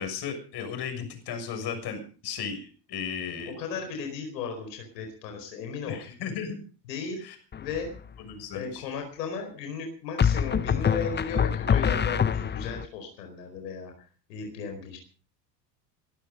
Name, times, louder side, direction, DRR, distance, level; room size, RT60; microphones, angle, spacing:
voice 1, 0.0-3.5 5.8-6.6 7.2-7.3 8.2-8.8, left 7 dB, 50° left, 6 dB, 6.8 m, -35 dB
voice 2, 3.4-6.0 6.9-7.2 7.6-7.9 8.5-15.0, left 5 dB, 80° left, 4 dB, 4.8 m, -35 dB
sound 1, 7.5-8.0 10.2-12.8, left 7 dB, 20° left, 0.9 m, -25 dB
22.5 x 12.0 x 5.3 m, 0.40 s
hypercardioid pair, 80°, 48 cm